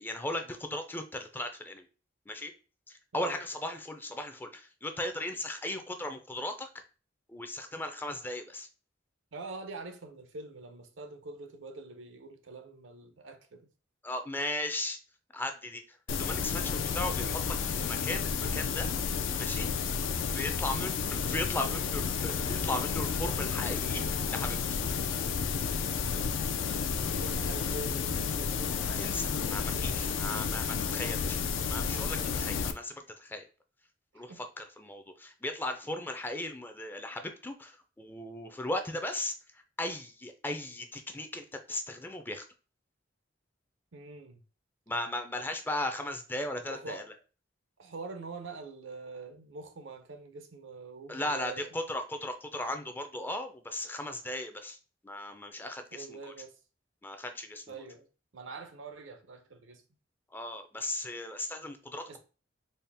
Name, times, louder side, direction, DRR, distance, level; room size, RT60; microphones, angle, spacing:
voice 1, 0.0-1.8 2.3-2.5 2.9-6.7 7.3-8.7 14.0-15.0 15.3-18.9 19.4-19.7 20.3-24.0 24.3-24.6 28.9-31.4 31.7-32.9 33.2-33.5 34.1-39.3 39.8-42.4 44.9-47.0 51.1-54.8 55.0-56.3 57.0-57.7 60.3-62.2, left 1 dB, 10° left, 0.3 m, -37 dB
voice 2, 9.3-13.7 27.1-28.7 34.1-34.4 43.9-44.4 46.6-47.1 47.8-51.8 55.9-56.5 57.7-58.1 58.3-59.8 62.1-62.2, right 3 dB, 80° right, 0.6 m, -45 dB
sound 1, 16.1-32.7, left 6 dB, 80° left, 0.4 m, -31 dB
4.1 x 2.1 x 3.3 m
head